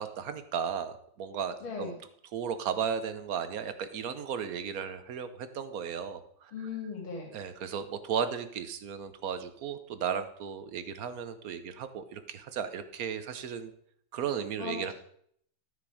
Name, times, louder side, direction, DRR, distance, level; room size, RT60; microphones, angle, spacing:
voice 1, 0.0-1.9 2.3-6.5 7.3-13.7 14.1-14.9, right 7 dB, 55° right, 11 dB, 1.1 m, -35 dB
voice 2, 1.6-2.0 6.5-7.3 14.6-14.9, left 5 dB, 90° left, 0 dB, 3.5 m, -38 dB
13.0 x 6.1 x 4.9 m, 0.66 s
omnidirectional pair, 2.2 m